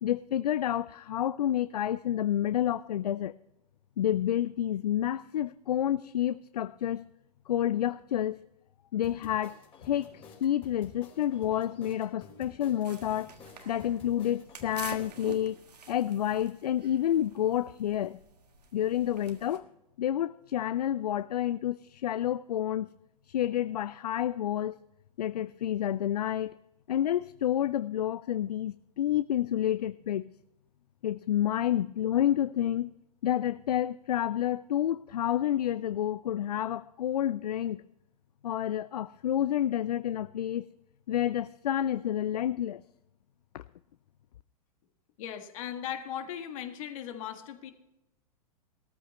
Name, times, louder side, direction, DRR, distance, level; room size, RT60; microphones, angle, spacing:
voice 1, 0.0-3.3 4.0-7.1 7.5-8.4 8.9-13.3 13.7-15.6 15.9-18.2 18.7-19.6 20.0-22.9 23.3-24.8 25.2-26.5 26.9-30.3 31.0-32.9 33.2-37.8 38.4-40.7 41.1-42.8 43.5-43.6, left 11 dB, 75° left, 16 dB, 0.4 m, -29 dB
sound 1, 9.0-15.1, left 5 dB, 25° left, 3.5 m, -51 dB
sound 2, 12.8-19.6, right 5 dB, 85° right, 1.6 m, -48 dB
voice 2, 45.2-47.7, left 10 dB, 55° left, 6 dB, 1.7 m, -38 dB
17.5 x 14.0 x 3.1 m, 0.90 s
hypercardioid pair, 100°, 20 cm